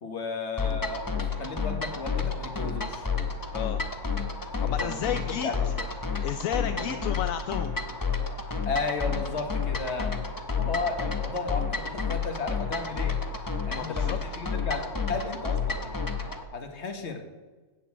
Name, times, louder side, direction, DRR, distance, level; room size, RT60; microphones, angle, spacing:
voice 1, 0.0-3.1 4.6-5.0 5.4-5.8 6.5-6.9 8.6-10.1 10.6-13.2 13.7-16.0 16.5-17.2, left 4 dB, 55° left, 6 dB, 1.6 m, -34 dB
sound 1, 0.6-16.4, left 5 dB, 20° left, 0.7 m, -30 dB
voice 2, 4.6-5.7 6.2-7.7 13.7-14.2, left 10 dB, 80° left, 10 dB, 1.0 m, -32 dB
8.5 x 8.3 x 7.4 m, 1.3 s
omnidirectional pair, 1.4 m